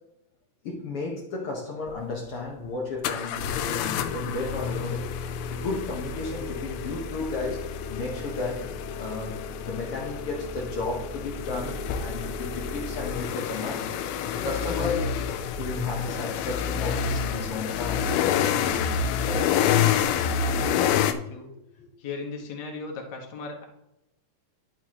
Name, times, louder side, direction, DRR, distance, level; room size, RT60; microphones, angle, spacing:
voice 1, 0.6-8.7 9.0-15.1 15.5-18.1 18.5-19.6, left 3 dB, 65° left, -1 dB, 1.4 m, -34 dB
sound 1, 1.9-2.0 3.0-21.1, left 7 dB, 90° left, 2.4 m, -28 dB
voice 2, 19.9-21.5 22.0-23.6, left 4 dB, 45° left, 0 dB, 1.3 m, -38 dB
11.0 x 6.0 x 3.0 m, 0.88 s
omnidirectional pair, 4.1 m